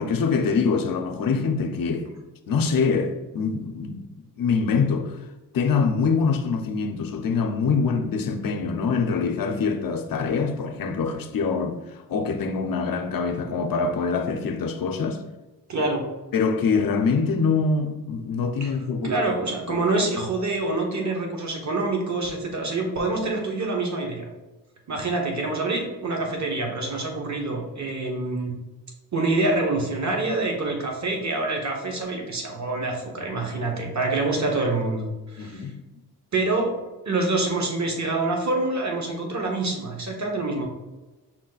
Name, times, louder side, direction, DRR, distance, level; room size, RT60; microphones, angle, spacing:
voice 1, 0.0-2.1 2.5-4.1 4.4-5.2 5.5-15.2 16.3-19.1 19.8-19.9 35.4-35.8, left 5 dB, 60° left, 0.7 m, -24 dB
voice 2, 15.7-16.0 18.6-18.7 19.0-24.3 24.9-28.5 29.1-35.6 36.3-36.7 37.0-40.7, right 2 dB, 45° right, 1.2 m, -26 dB
6.1 x 2.1 x 4.0 m
cardioid pair, 65°, 39 cm